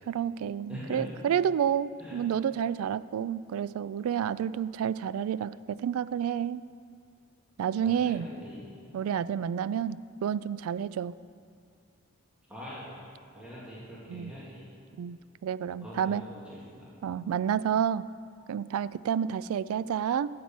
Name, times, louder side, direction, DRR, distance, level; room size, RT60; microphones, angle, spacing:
voice 1, 0.1-6.6 7.6-8.3 8.9-11.1 14.1-14.3 15.0-16.2 17.0-18.0 18.5-20.3, right 8 dB, 90° right, 17 dB, 0.3 m, -30 dB
voice 2, 0.7-1.1 2.0-2.2 7.8-8.7 12.5-13.0 13.3-14.7 15.8-16.9, equal, 5° right, -8 dB, 2.1 m, -43 dB
9.4 x 7.7 x 7.2 m, 2.3 s
head